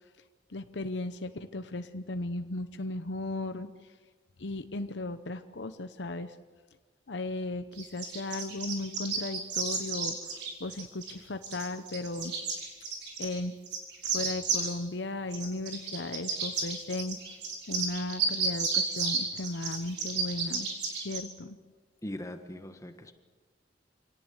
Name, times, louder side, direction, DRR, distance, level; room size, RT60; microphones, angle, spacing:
voice 1, 0.5-3.7 4.4-6.3 7.1-10.1 10.6-12.3 13.2-13.5 14.0-17.2 17.7-20.7 20.9-21.6, left 2 dB, 90° left, 9 dB, 0.9 m, -36 dB
sound 1, 7.8-11.1 11.4-13.4 13.6-14.7 15.3-21.2, right 5 dB, 70° right, 5.1 m, -32 dB
voice 2, 22.0-23.1, left 1 dB, 20° left, 7 dB, 1.4 m, -40 dB
26.0 x 18.0 x 8.2 m, 1.4 s
head